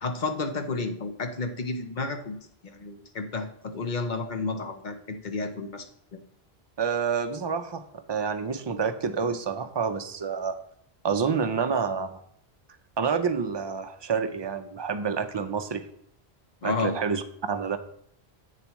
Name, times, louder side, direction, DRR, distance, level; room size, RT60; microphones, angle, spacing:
voice 1, 0.0-2.4 2.6-5.9 6.1-6.2 16.6-16.9, left 3 dB, 50° left, 6 dB, 0.9 m, -31 dB
voice 2, 6.8-7.8 8.1-10.6 11.0-12.2 13.0-15.9 16.6-17.8, right 6 dB, 35° right, 9 dB, 0.4 m, -28 dB
8.4 x 6.8 x 3.1 m, 0.69 s
omnidirectional pair, 1.1 m